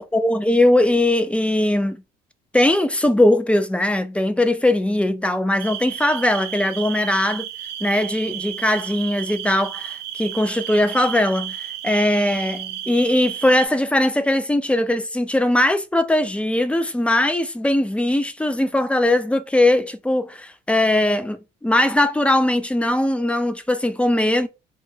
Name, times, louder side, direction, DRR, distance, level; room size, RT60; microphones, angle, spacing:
voice 1, 0.0-2.0 2.5-7.4 7.8-24.5, left 1 dB, 5° left, 0.3 m, -20 dB
sound 1, 5.6-13.7, right 11 dB, 75° right, 0.5 m, -33 dB
2.9 x 2.1 x 3.1 m
cardioid pair, 110°, 17 cm